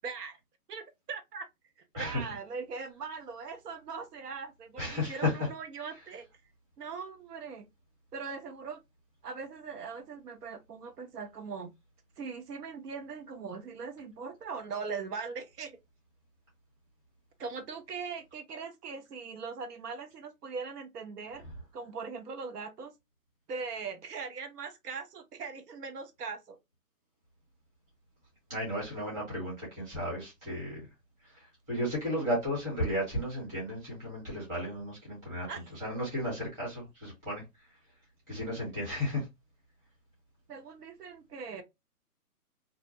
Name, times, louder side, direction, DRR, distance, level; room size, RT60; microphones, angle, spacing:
voice 1, 0.0-0.4 0.7-1.5 2.0-6.3 6.8-7.7 8.1-8.8 9.2-11.7 12.2-15.8 17.4-21.4 21.7-22.9 23.5-26.6 35.4-35.7 40.5-41.6, right 5 dB, 80° right, 0.8 m, -40 dB
voice 2, 4.8-5.3 28.5-30.9 31.7-37.4 38.3-39.2, left 1 dB, 10° right, 0.9 m, -34 dB
2.4 x 2.0 x 2.5 m
hypercardioid pair, 160°, 46 cm